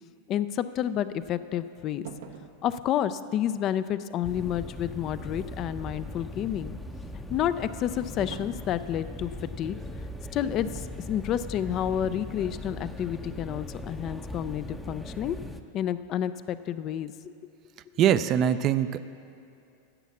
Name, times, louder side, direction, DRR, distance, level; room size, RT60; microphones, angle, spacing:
voice 1, 0.3-2.1 2.6-6.8 7.3-9.8 10.3-15.4 15.7-17.3, left 10 dB, 40° left, 13 dB, 0.4 m, -30 dB
sound 1, 2.0-2.6 8.2-8.7 10.6-11.0 11.3-11.6, right 6 dB, 75° right, 0.8 m, -43 dB
sound 2, 4.2-15.6, left 1 dB, 5° left, 0.6 m, -39 dB
voice 2, 18.0-19.0, right 10 dB, 40° right, 13 dB, 0.4 m, -22 dB
10.5 x 7.3 x 7.1 m, 2.6 s
hypercardioid pair, 105°, 0 cm